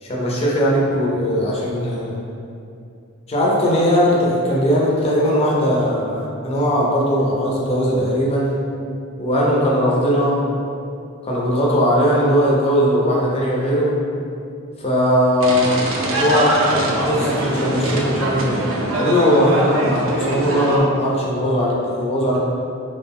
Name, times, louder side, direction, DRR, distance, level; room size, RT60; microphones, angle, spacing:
voice 1, 0.0-2.2 3.3-8.5 9.2-10.4 11.2-14.0 14.8-15.8 16.2-18.6 18.9-22.4, equal, 30° left, -4 dB, 0.4 m, -19 dB
sound 1, 15.4-20.8, right 1 dB, 65° right, 0.4 m, -23 dB
2.3 x 2.1 x 3.4 m, 2.5 s
head